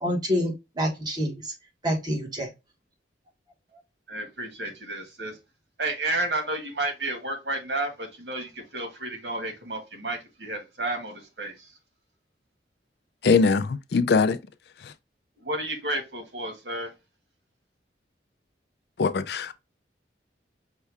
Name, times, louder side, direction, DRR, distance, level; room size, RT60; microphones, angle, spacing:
voice 1, 0.0-1.5 1.8-2.5, equal, 25° right, 1.3 m, -27 dB
voice 2, 4.1-5.4 5.8-11.7 15.4-16.9, right 2 dB, 75° right, 1.7 m, -31 dB
voice 3, 13.2-14.4 14.8-14.9 19.0-19.5, left 4 dB, 65° left, 0.4 m, -22 dB
5.5 x 2.3 x 3.4 m
head